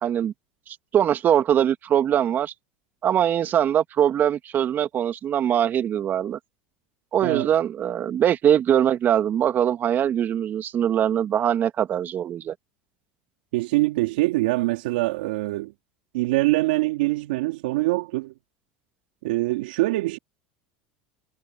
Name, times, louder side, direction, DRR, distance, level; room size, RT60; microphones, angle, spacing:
voice 1, 0.0-0.3 0.7-2.5 3.0-6.4 7.1-12.5, right 10 dB, 40° right, 2.1 m, -22 dB
voice 2, 13.5-15.7 16.1-18.3 19.2-20.2, right 20 dB, 75° right, 3.2 m, -24 dB
hypercardioid pair, 95°, 5 cm